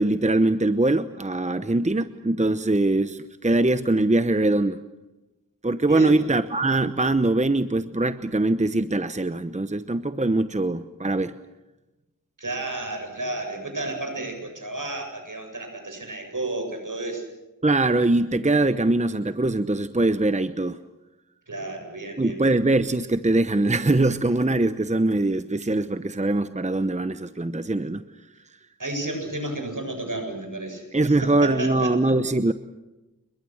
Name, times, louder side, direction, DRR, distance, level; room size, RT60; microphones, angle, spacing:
voice 1, 0.0-4.8 5.6-11.4 17.6-20.8 22.2-28.0 30.9-32.5, right 2 dB, 20° right, 11 dB, 1.0 m, -22 dB
voice 2, 5.9-6.2 12.4-17.2 21.5-22.5 28.8-31.9, right 2 dB, 65° right, 4 dB, 8.0 m, -32 dB
29.0 x 22.0 x 6.4 m, 1.1 s
wide cardioid pair, 55°, 34 cm